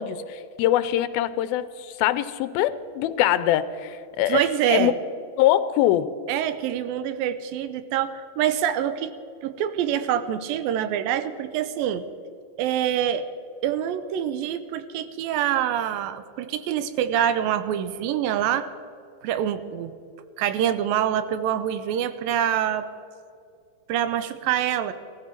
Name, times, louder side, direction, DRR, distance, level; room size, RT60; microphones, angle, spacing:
voice 1, 0.0-4.9 5.4-6.1, left 12 dB, 90° left, 14 dB, 2.4 m, -23 dB
voice 2, 4.3-4.9 6.3-9.1 9.4-12.1 12.6-13.3 13.6-18.7 19.2-19.9 20.4-22.9 23.9-24.9, right 10 dB, 85° right, 12 dB, 2.4 m, -25 dB
18.0 x 14.5 x 4.5 m, 2.4 s
omnidirectional pair, 4.2 m